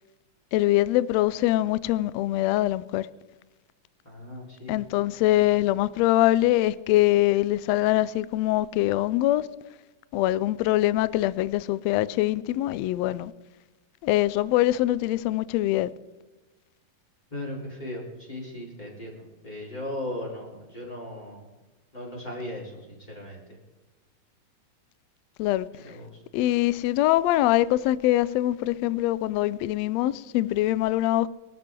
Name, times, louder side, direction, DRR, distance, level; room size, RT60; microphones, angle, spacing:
voice 1, 0.5-3.1 4.7-9.5 10.1-13.3 14.0-15.9 25.4-25.7 26.3-31.3, left 15 dB, 90° left, 1.5 m, -23 dB
voice 2, 4.0-4.8 17.3-21.4 21.9-23.4 25.8-26.2, left 1 dB, 15° left, 4.0 m, -37 dB
23.5 x 12.5 x 3.8 m
omnidirectional pair, 3.6 m